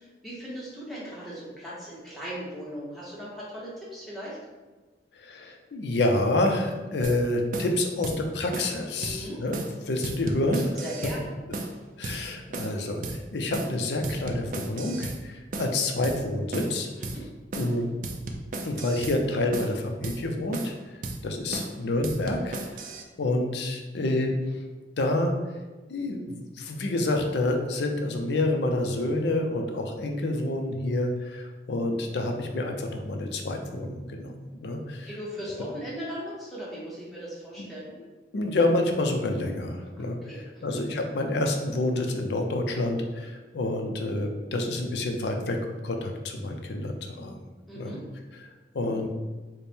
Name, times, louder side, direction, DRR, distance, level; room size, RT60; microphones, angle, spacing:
voice 1, 0.0-4.4 9.0-9.4 10.8-11.4 17.0-17.2 35.0-37.9 40.3-40.8 47.7-48.0, equal, ahead, -8 dB, 0.9 m, -38 dB
voice 2, 5.2-9.5 9.8-10.7 12.0-16.9 17.5-17.9 18.6-21.0 21.2-22.6 23.2-24.3 25.0-25.3 25.9-35.2 37.6-37.7 38.3-45.6 45.8-47.3 47.8-47.9 48.7-49.1, left 2 dB, 75° left, 3 dB, 0.5 m, -28 dB
sound 1, 7.0-7.2 7.5-7.7 8.0-8.2 8.5-8.8 9.0-9.2 9.5-9.7 10.0-11.2 11.5-11.8 12.0-12.2 12.5-12.8 13.0-13.2 13.5-13.8 14.0-15.2 15.5-15.7 16.0-16.2 16.5-16.8 17.0-17.2 17.5-17.8 18.0-19.2 19.5-19.7 20.0-20.2 20.5-20.8 21.0-21.2 21.5-21.7 22.0-23.0, right 2 dB, 45° right, 0.3 m, -35 dB
4.2 x 2.1 x 3.4 m, 1.2 s
head